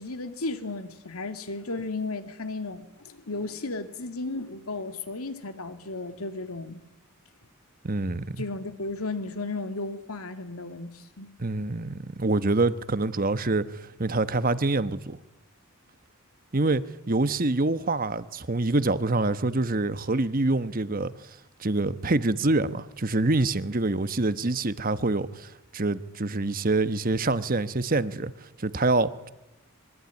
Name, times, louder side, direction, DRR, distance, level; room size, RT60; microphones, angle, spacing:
voice 1, 0.0-6.8 8.4-11.3, left 3 dB, 85° left, 2.5 m, -34 dB
voice 2, 7.8-8.4 11.4-15.2 16.5-21.1 21.6-28.3 28.6-29.3, right 2 dB, 40° right, 1.1 m, -26 dB
25.0 x 23.0 x 9.6 m
head